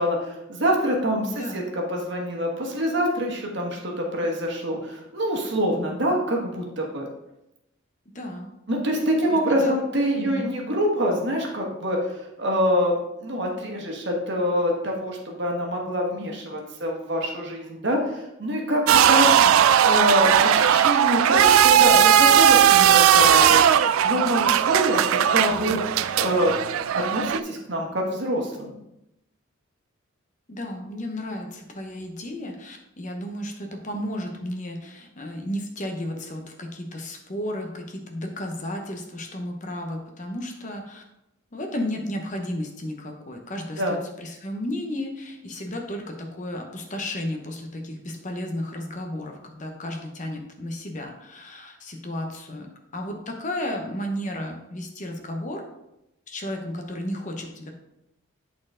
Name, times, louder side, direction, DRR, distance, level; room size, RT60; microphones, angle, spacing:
voice 1, 0.0-7.1 8.7-19.4 19.8-25.8 26.2-26.6 26.9-28.7 43.8-44.0, equal, 55° right, 0 dB, 1.3 m, -25 dB
voice 2, 1.3-1.6 8.1-8.5 9.3-9.7 10.1-10.5 19.3-19.6 30.5-41.0 41.5-52.7 52.9-55.6 56.3-57.7, left 1 dB, 35° left, 3 dB, 0.8 m, -33 dB
sound 1, 18.9-27.4, right 9 dB, 75° right, 0.3 m, -17 dB
8.6 x 4.3 x 3.7 m, 0.87 s
head